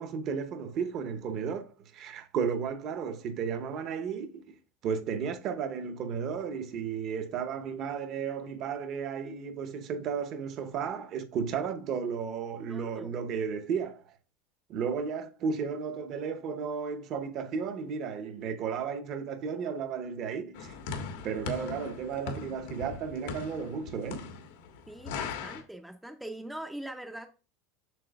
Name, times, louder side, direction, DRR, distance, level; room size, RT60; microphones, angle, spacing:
voice 1, 0.0-4.6 4.8-14.0 14.7-20.7 21.2-24.4, right 6 dB, 40° right, 0.8 m, -34 dB
voice 2, 12.7-13.1 24.9-27.3, right 1 dB, 5° right, 0.5 m, -42 dB
sound 1, 20.5-25.6, left 5 dB, 85° left, 1.4 m, -39 dB
7.6 x 5.9 x 2.3 m
supercardioid pair, 155°, 0 cm